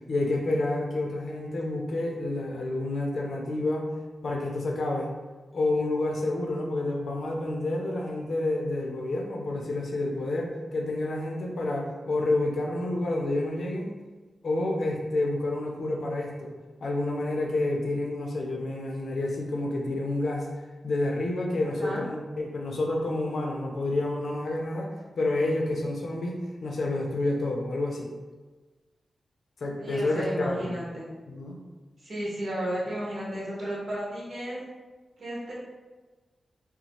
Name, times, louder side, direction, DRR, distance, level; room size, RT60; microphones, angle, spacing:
voice 1, 0.1-3.9 4.2-5.1 5.5-13.9 14.4-16.5 16.8-20.5 20.8-28.1 29.6-30.7 31.3-31.6, left 2 dB, 70° left, 0 dB, 0.5 m, -29 dB
voice 2, 21.6-22.0 29.8-31.1 32.0-34.6 35.2-35.5, equal, 60° right, -7 dB, 1.0 m, -33 dB
3.0 x 2.0 x 2.7 m, 1.3 s
wide cardioid pair, 85°, 0 cm